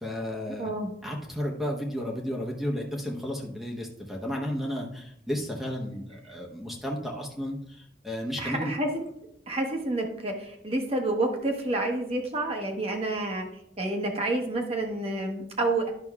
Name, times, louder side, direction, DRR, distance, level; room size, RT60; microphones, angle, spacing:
voice 1, 0.0-0.7 1.0-8.7, equal, ahead, -1 dB, 0.9 m, -33 dB
voice 2, 0.6-0.9 8.4-9.0 9.5-13.5 13.8-15.9, right 2 dB, 35° right, 2 dB, 1.1 m, -29 dB
11.0 x 6.0 x 2.4 m, 0.74 s
head